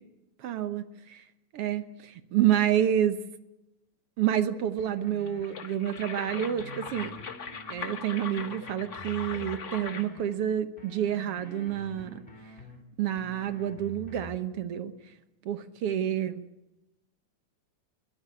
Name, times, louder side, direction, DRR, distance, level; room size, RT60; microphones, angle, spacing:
voice 1, 0.4-1.2 1.5-3.2 4.2-7.1 7.7-12.2 13.0-14.9 15.4-16.4, right 10 dB, 60° right, 11 dB, 1.7 m, -29 dB
sound 1, 4.8-5.6 6.0-8.0 8.4-10.4 10.8-12.8 13.2-14.4, left 1 dB, 15° left, 3.6 m, -48 dB
sound 2, 5.3-10.2, left 6 dB, 60° left, 0.7 m, -40 dB
22.5 x 17.0 x 9.5 m, 0.93 s
omnidirectional pair, 3.5 m